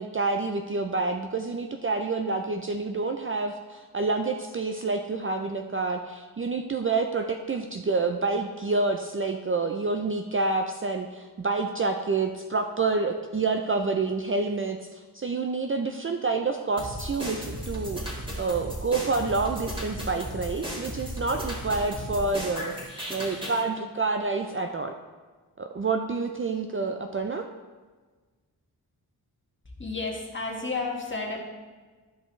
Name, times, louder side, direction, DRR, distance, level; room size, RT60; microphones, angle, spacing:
voice 1, 0.0-24.9 25.6-27.5, right 3 dB, 35° right, 5 dB, 0.5 m, -28 dB
sound 1, 16.8-23.6, equal, 10° right, 2.0 m, -35 dB
voice 2, 29.8-31.4, left 3 dB, 30° left, -2 dB, 1.7 m, -31 dB
12.0 x 5.3 x 3.2 m, 1.4 s
wide cardioid pair, 75°, 39 cm